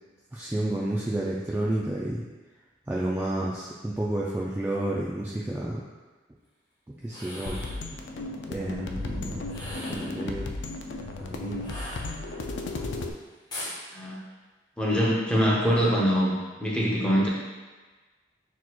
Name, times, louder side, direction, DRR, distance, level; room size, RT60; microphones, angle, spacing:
voice 1, 0.3-2.2 2.9-5.8 6.9-7.6 8.5-9.4 9.9-10.5 11.2-11.7, right 1 dB, 10° right, -6 dB, 0.3 m, -30 dB
sound 1, 7.0-7.8 9.4-10.2 11.6-12.5 13.5-13.8, left 1 dB, 25° left, 1.0 m, -39 dB
sound 2, 7.5-13.1, left 2 dB, 70° left, 0.4 m, -35 dB
voice 2, 14.8-17.3, equal, 5° left, -5 dB, 0.7 m, -24 dB
6.1 x 3.0 x 2.3 m, 1.3 s
head